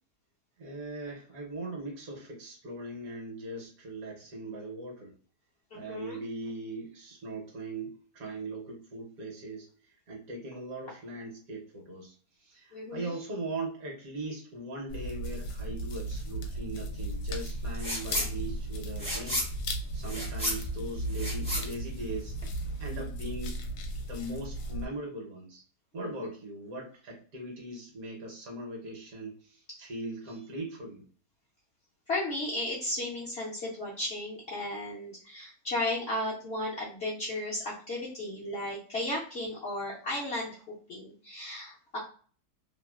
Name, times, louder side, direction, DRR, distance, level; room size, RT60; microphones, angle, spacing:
voice 1, 0.6-5.1 5.7-19.4 19.9-22.4 22.8-23.6 24.1-25.6 25.9-31.0, right 2 dB, 60° right, 0 dB, 1.1 m, -40 dB
voice 2, 5.7-6.2 12.7-13.1 26.0-26.3 32.1-40.6 40.9-42.0, left 1 dB, 60° left, -5 dB, 0.7 m, -34 dB
sound 1, 14.9-24.8, right 1 dB, 80° left, 1.2 m, -36 dB
sound 2, 17.7-18.3 18.6-22.6, equal, 10° left, 0.4 m, -34 dB
2.9 x 2.4 x 2.3 m, 0.43 s
omnidirectional pair, 1.8 m